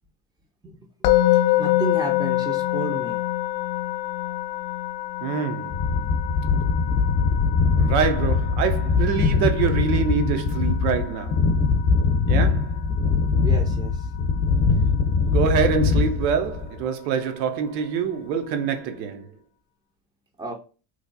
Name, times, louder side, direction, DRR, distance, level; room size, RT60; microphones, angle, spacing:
Musical instrument, 1.0-12.1, left 14 dB, 80° left, 0.6 m, -26 dB
voice 1, 1.3-3.2 3.6-3.7 4.2-4.3 13.4-14.1 20.4-20.5, right 2 dB, 10° right, 0.4 m, -33 dB
voice 2, 5.2-5.8 7.7-11.4 12.3-12.8 15.3-19.3, right 7 dB, 90° right, 0.8 m, -25 dB
sound 1, 5.7-16.8, left 4 dB, 45° left, 0.7 m, -22 dB
3.1 x 2.2 x 3.8 m
supercardioid pair, 95°, 49 cm